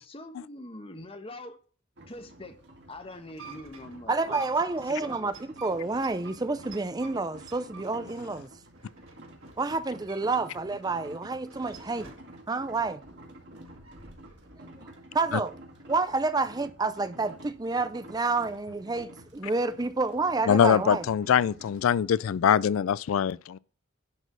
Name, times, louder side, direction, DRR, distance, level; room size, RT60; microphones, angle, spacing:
voice 1, 0.0-1.6 2.1-2.6 2.9-5.3, left 1 dB, 25° left, 1.1 m, -44 dB
sound 1, 2.0-21.8, right 1 dB, 55° right, 2.1 m, -50 dB
sound 2, 3.1-10.5 10.8-12.3 12.7-14.6, right 4 dB, 85° right, 4.4 m, -51 dB
voice 2, 4.1-5.3 5.6-8.5 9.6-12.1 12.5-13.0 15.1-15.5 15.9-21.0, right 3 dB, 20° right, 0.5 m, -29 dB
voice 3, 20.5-23.6, left 8 dB, 80° left, 0.3 m, -23 dB
11.0 x 4.1 x 6.7 m
head